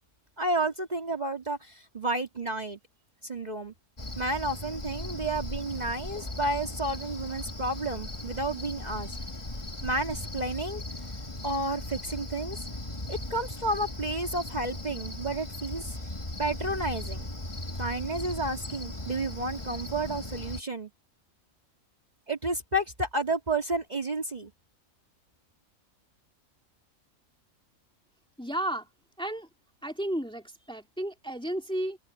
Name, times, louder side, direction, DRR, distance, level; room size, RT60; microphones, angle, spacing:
voice 1, 0.4-2.8 3.2-3.7 4.2-9.2 9.8-10.8 11.4-12.6 13.1-16.0 16.4-17.3 17.8-20.9 22.3-24.5, right 2 dB, 30° right, 2.3 m, -31 dB
Cricket, 4.0-20.6, left 1 dB, 20° left, 1.9 m, -38 dB
voice 2, 28.4-28.9 29.2-29.5 29.8-32.0, right 1 dB, 5° left, 2.5 m, -33 dB
open air
omnidirectional pair, 1.4 m